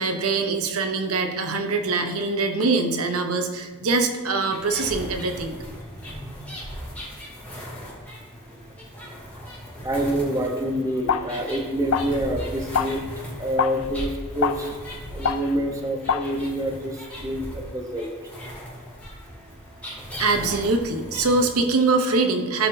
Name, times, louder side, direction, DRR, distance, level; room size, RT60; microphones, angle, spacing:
voice 1, 0.0-5.6 20.2-22.7, right 3 dB, 75° right, 5 dB, 0.9 m, -23 dB
sound 1, 4.5-21.5, equal, 5° left, 2.7 m, -38 dB
voice 2, 5.9-6.6 8.5-9.2 9.5-13.0 13.4-18.1, right 1 dB, 15° right, 1 dB, 0.9 m, -28 dB
sound 2, 10.7-16.8, left 7 dB, 65° left, 0.4 m, -29 dB
16.0 x 5.6 x 2.7 m, 1.5 s
head